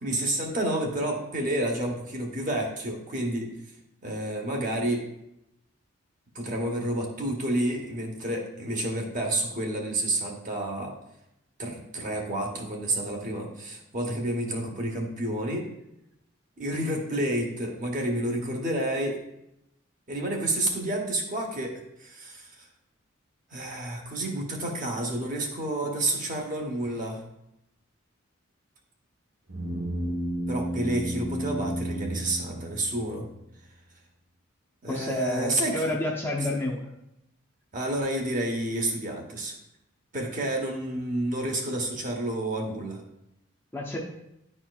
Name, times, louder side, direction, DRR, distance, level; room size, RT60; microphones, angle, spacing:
voice 1, 0.0-3.5 4.0-5.0 6.3-10.9 11.6-15.7 16.6-19.2 20.1-22.7 23.5-27.2 30.5-33.3 34.8-35.9 37.7-39.5 40.1-43.0, right 1 dB, 40° right, 1 dB, 1.0 m, -30 dB
sound 1, 29.5-33.2, right 1 dB, 80° right, 1.0 m, -32 dB
voice 2, 34.9-36.9 43.7-44.0, left 1 dB, 10° left, -3 dB, 0.6 m, -29 dB
10.5 x 4.3 x 2.3 m, 0.84 s
head